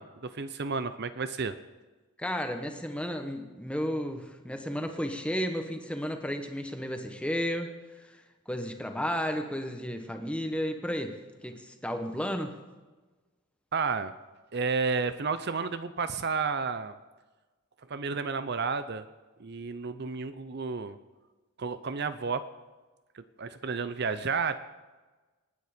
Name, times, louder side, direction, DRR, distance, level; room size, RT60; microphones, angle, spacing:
voice 1, 0.0-1.6 13.7-14.1 14.5-16.9 17.9-19.0 19.4-21.0 21.6-22.5 23.1-24.6, right 4 dB, 45° right, 12 dB, 0.6 m, -31 dB
voice 2, 2.2-7.7 8.0-8.1 8.5-11.2 11.4-12.6, equal, 5° left, 5 dB, 1.2 m, -33 dB
27.5 x 9.6 x 5.1 m, 1.3 s
head